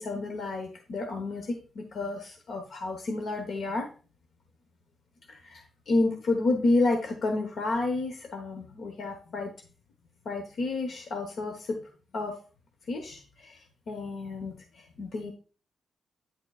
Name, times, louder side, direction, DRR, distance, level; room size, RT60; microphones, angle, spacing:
voice 1, 0.0-3.9 5.3-9.5 10.2-12.3 12.9-15.3, left 2 dB, 65° left, 5 dB, 1.0 m, -31 dB
9.4 x 6.7 x 2.4 m, 0.38 s
cardioid pair, 110°, 0 cm